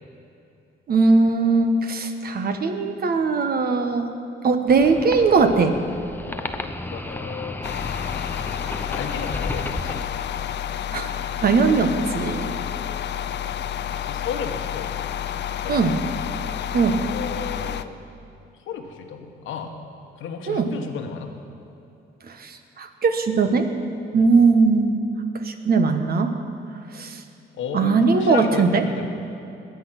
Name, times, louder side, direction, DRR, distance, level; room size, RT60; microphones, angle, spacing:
voice 1, 0.9-4.1 4.4-5.8 10.9-11.1 11.4-12.5 15.7-15.9 16.7-17.0 20.5-20.7 22.4-23.7 24.1-25.0 25.4-26.3 26.9-27.2 27.7-28.8, right 4 dB, 50° right, 7 dB, 1.3 m, -19 dB
sound 1, 4.7-10.0, left 1 dB, 10° left, 0.7 m, -33 dB
voice 2, 6.2-7.7 8.9-10.0 12.4-13.2 14.0-15.1 15.6-16.2 17.1-18.0 18.6-19.8 20.2-21.3 24.1-24.3 27.5-29.1, left 6 dB, 80° left, 4 dB, 1.3 m, -34 dB
sound 2, 7.6-17.8, left 9 dB, 60° left, 0.6 m, -30 dB
21.0 x 8.3 x 6.0 m, 2.7 s
cardioid pair, 90°, 20 cm